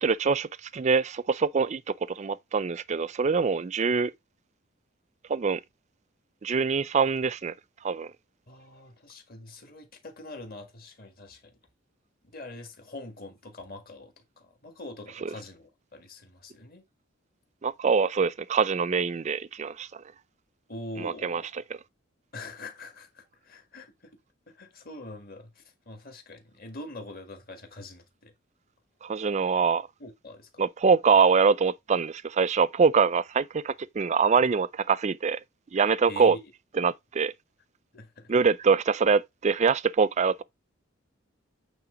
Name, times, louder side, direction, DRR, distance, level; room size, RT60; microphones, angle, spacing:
voice 1, 0.0-1.8 2.1-4.1 5.3-5.6 6.4-7.5 7.8-8.1 15.2-15.3 17.6-20.0 21.0-21.4 29.0-29.9 30.6-35.4 35.7-36.4 36.8-37.3 38.3-40.4, right 5 dB, 35° right, 0.4 m, -24 dB
voice 2, 8.5-11.6 12.3-16.9 20.7-21.5 22.3-24.2 24.5-28.3 30.0-30.7 36.1-36.4 37.9-38.3, left 2 dB, 45° left, 1.7 m, -44 dB
8.8 x 3.3 x 5.0 m
head